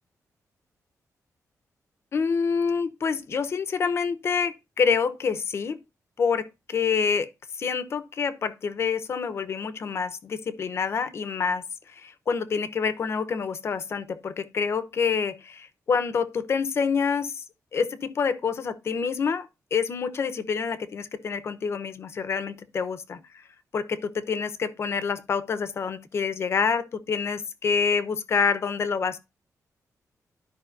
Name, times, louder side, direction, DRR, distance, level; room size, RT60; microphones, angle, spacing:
voice 1, 2.1-5.8 6.2-7.3 7.6-17.4 17.7-23.2 23.7-29.2, left 5 dB, 45° left, 0.8 m, -27 dB
13.0 x 5.0 x 2.5 m
wide cardioid pair, 165°, 6 cm